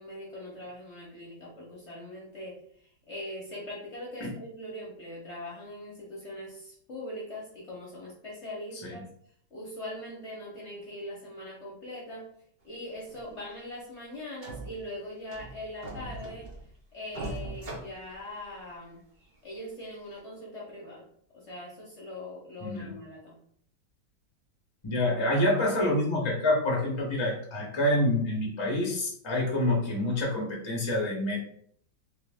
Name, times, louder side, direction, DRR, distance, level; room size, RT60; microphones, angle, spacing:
voice 1, 0.0-9.1 9.5-12.2 12.6-16.5 16.9-19.0 19.4-21.0 21.3-23.4, left 1 dB, 50° left, -4 dB, 0.9 m, -41 dB
sound 1, 13.0-13.2 13.6-13.7 14.0-14.1 14.4-14.9 15.3-16.8 17.1-18.7 19.2-19.3 19.9-20.0, right 2 dB, 90° right, 0.4 m, -40 dB
voice 2, 24.8-31.4, left 1 dB, 30° left, -2 dB, 0.5 m, -27 dB
3.0 x 2.9 x 3.4 m, 0.64 s
omnidirectional pair, 2.1 m